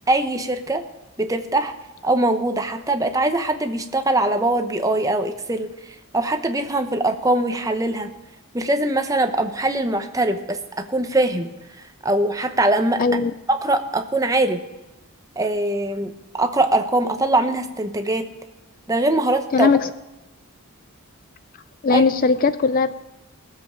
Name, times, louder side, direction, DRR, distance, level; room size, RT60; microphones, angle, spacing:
voice 1, 0.1-0.8 1.2-1.7 2.0-5.7 6.1-8.1 8.5-11.5 11.8-13.0 13.5-14.6 15.4-18.3 18.9-19.7 21.9-22.0, right 2 dB, 15° right, 7 dB, 0.8 m, -22 dB
voice 2, 13.0-13.3 19.5-19.9 21.8-22.9, left 4 dB, 40° left, 13 dB, 0.3 m, -18 dB
19.5 x 7.6 x 5.0 m, 1.0 s
head